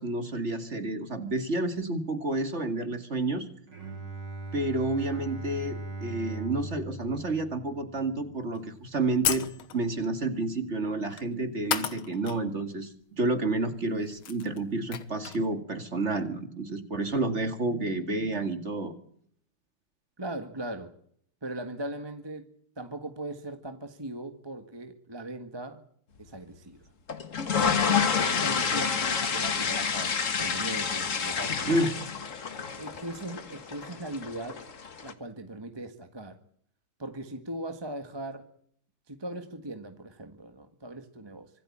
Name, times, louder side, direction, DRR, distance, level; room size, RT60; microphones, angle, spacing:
voice 1, 0.0-3.5 4.5-9.5 9.7-18.9 31.7-31.9, right 2 dB, 35° right, 9 dB, 2.2 m, -30 dB
Bowed string instrument, 3.7-9.4, right 2 dB, 55° right, 4.8 m, -40 dB
sound 1, 8.6-8.7 9.2-9.9 11.1-11.3 11.7-12.4 12.7-12.8 13.8-13.9 14.1-15.5, left 9 dB, 75° left, 2.2 m, -32 dB
voice 2, 20.2-21.0 21.4-22.5 22.8-25.8 26.2-26.8 27.6-31.8 32.8-34.6 35.0-36.4 37.0-38.5 39.1-41.5, right 1 dB, 15° right, 7 dB, 1.4 m, -39 dB
sound 2, 27.1-35.1, left 6 dB, 40° left, 1.7 m, -29 dB
25.5 x 14.0 x 8.7 m, 0.65 s
omnidirectional pair, 2.3 m